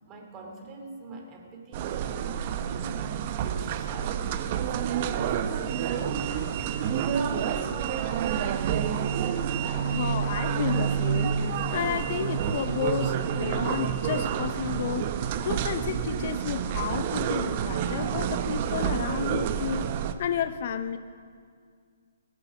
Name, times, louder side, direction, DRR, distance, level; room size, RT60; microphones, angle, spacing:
voice 1, 0.1-6.2 6.5-9.1, right 3 dB, 25° right, 2 dB, 2.5 m, -43 dB
sound 1, 1.7-20.1, right 8 dB, 40° right, 0.8 m, -29 dB
voice 2, 9.8-19.9 20.2-21.0, left 8 dB, 50° left, 11 dB, 0.6 m, -32 dB
18.5 x 8.4 x 7.2 m, 2.1 s
figure-of-eight pair, 135°, 0 cm